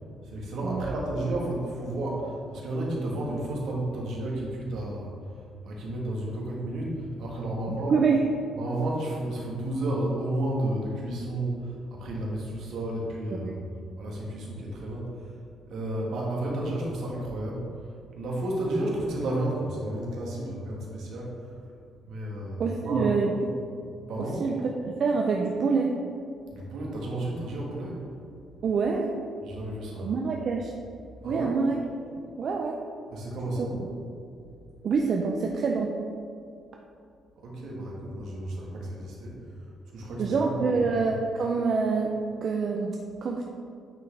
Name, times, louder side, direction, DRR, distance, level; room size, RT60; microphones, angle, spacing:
voice 1, 0.2-7.9 8.5-13.6 14.0-15.4 15.7-21.6 22.0-23.3 24.1-24.4 26.5-28.1 29.4-30.1 31.2-31.6 33.1-33.9 37.4-39.4 39.9-40.6 40.9-41.1, right 1 dB, 75° right, -3 dB, 1.4 m, -32 dB
voice 2, 7.7-8.2 13.3-13.5 22.6-23.3 24.4-24.5 24.8-25.9 28.6-29.1 30.0-30.7 31.2-31.8 32.4-32.8 33.6-33.7 34.8-35.9 40.2-42.1 42.4-43.5, right 5 dB, 55° right, 1 dB, 0.5 m, -26 dB
8.9 x 3.8 x 3.4 m, 2.5 s
cardioid pair, 90°, 0 cm